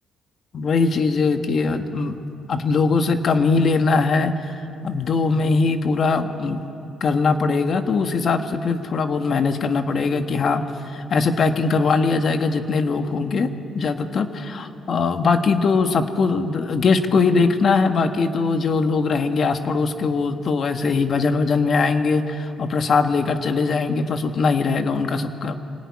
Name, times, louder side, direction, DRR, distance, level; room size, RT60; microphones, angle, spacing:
voice 1, 0.5-2.2 2.5-4.3 4.8-6.6 7.0-25.5, left 4 dB, 55° left, 7 dB, 1.6 m, -21 dB
25.0 x 18.0 x 9.8 m, 2.7 s
cardioid pair, 90°, 0 cm